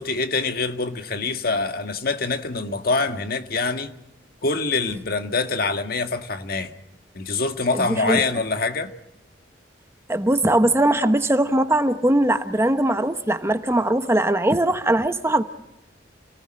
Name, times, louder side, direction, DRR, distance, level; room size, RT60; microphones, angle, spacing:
voice 1, 0.0-3.9 4.4-6.7 7.1-8.9, left 3 dB, 55° left, 1.7 m, -25 dB
voice 2, 7.7-8.2 10.1-15.4, right 1 dB, 15° right, 1.0 m, -20 dB
29.5 x 18.5 x 6.4 m
head